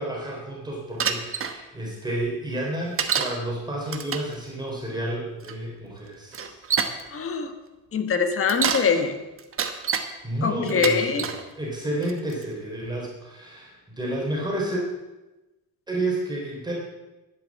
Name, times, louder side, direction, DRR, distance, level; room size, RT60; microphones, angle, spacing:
voice 1, 0.0-6.6 10.2-11.3 11.5-14.8 15.9-16.7, right 1 dB, 10° right, -3 dB, 3.5 m, -30 dB
Bicycle, 1.0-1.5 3.0-3.4 3.9-4.3 5.4-5.5 6.3-7.0 8.3-8.9 9.4-10.1 10.7-11.4 12.0-12.4, right 6 dB, 35° right, 1.1 m, -26 dB
voice 2, 7.1-7.5 7.9-9.2 10.4-11.2, left 5 dB, 35° left, 7 dB, 1.3 m, -23 dB
11.0 x 9.4 x 7.3 m, 1.1 s
cardioid pair, 160°, 36 cm